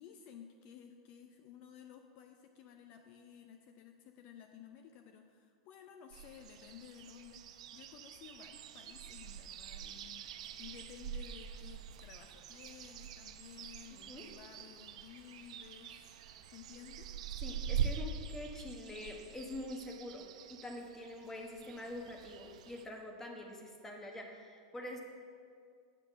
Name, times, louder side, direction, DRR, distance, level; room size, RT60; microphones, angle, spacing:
voice 1, 0.0-16.1 16.5-17.1, left 8 dB, 45° left, 5 dB, 0.6 m, -55 dB
sound 1, 6.1-22.9, right 8 dB, 75° right, 0.6 m, -44 dB
voice 2, 17.4-25.0, left 1 dB, 10° left, 2 dB, 1.2 m, -45 dB
8.9 x 6.0 x 6.1 m, 2.2 s
supercardioid pair, 135°, 3 cm